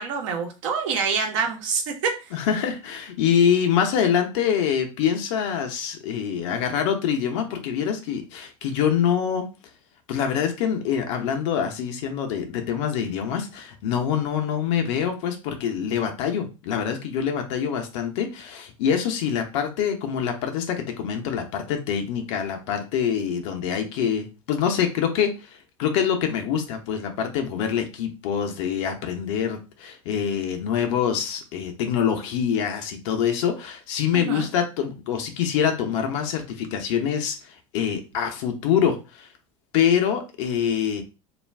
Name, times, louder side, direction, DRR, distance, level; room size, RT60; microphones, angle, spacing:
voice 1, 0.0-2.1 34.1-34.5, right 5 dB, 65° right, 3 dB, 0.9 m, -26 dB
voice 2, 2.3-9.5 10.1-39.3 39.7-41.0, left 8 dB, 60° left, 4 dB, 0.7 m, -25 dB
2.4 x 2.2 x 3.3 m, 0.30 s
hypercardioid pair, 80°, 17 cm